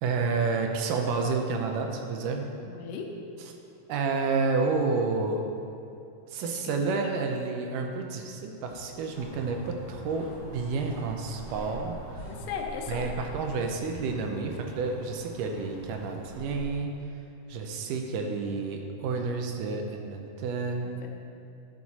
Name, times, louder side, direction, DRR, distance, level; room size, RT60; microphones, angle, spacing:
voice 1, 0.0-2.5 3.9-5.4 6.3-12.3 12.9-17.0 17.5-21.0, right 4 dB, 80° right, 3 dB, 2.3 m, -30 dB
voice 2, 2.7-3.1 6.4-6.7 7.0-7.3 12.2-13.1 21.0-21.1, left 6 dB, 85° left, 2 dB, 2.4 m, -37 dB
sound 1, 8.7-12.5, right 1 dB, 50° right, 3.0 m, -51 dB
sound 2, 9.1-16.6, equal, 20° left, 1.0 m, -44 dB
12.0 x 6.2 x 4.2 m, 2.6 s
omnidirectional pair, 3.8 m